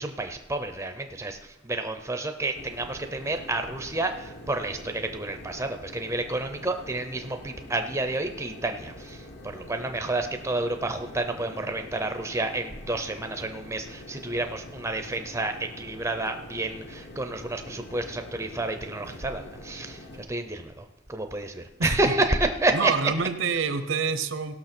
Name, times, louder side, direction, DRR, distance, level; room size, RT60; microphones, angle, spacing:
voice 1, 0.0-22.9, right 2 dB, 15° right, 7 dB, 0.6 m, -30 dB
sound 1, 2.5-20.3, left 1 dB, 55° left, 1.1 m, -45 dB
voice 2, 22.7-24.6, right 5 dB, 70° right, 11 dB, 0.9 m, -27 dB
16.5 x 6.2 x 6.0 m, 1.0 s
head